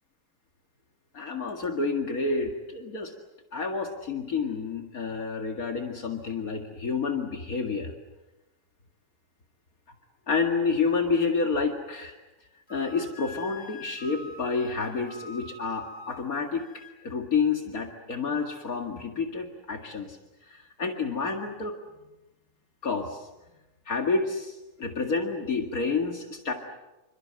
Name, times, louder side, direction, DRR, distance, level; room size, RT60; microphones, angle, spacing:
voice 1, 1.1-3.1 3.5-7.9 10.3-12.2 12.7-20.2 20.5-21.8 22.8-23.3 23.9-26.5, left 4 dB, 65° left, 3 dB, 2.5 m, -29 dB
Wind instrument woodwind instrument, 12.7-17.0, left 3 dB, 30° left, 3.8 m, -46 dB
28.5 x 25.0 x 7.7 m, 1.0 s
omnidirectional pair, 1.6 m